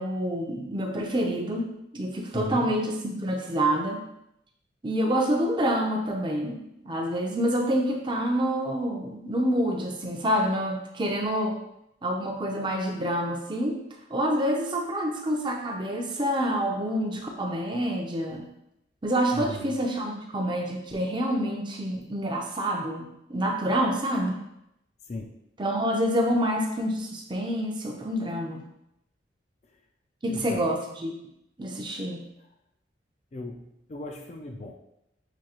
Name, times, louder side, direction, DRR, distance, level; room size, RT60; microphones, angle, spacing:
voice 1, 0.0-1.7 1.9-4.0 4.8-11.6 12.0-13.8 14.1-18.5 19.0-24.4 25.6-28.6 30.2-31.1 31.6-32.2, equal, 25° right, 1 dB, 0.5 m, -27 dB
voice 2, 2.3-2.7 19.3-19.8 25.1-25.3 30.3-30.7 33.3-34.8, left 2 dB, 35° left, 3 dB, 0.4 m, -36 dB
6.1 x 2.8 x 2.9 m, 0.82 s
head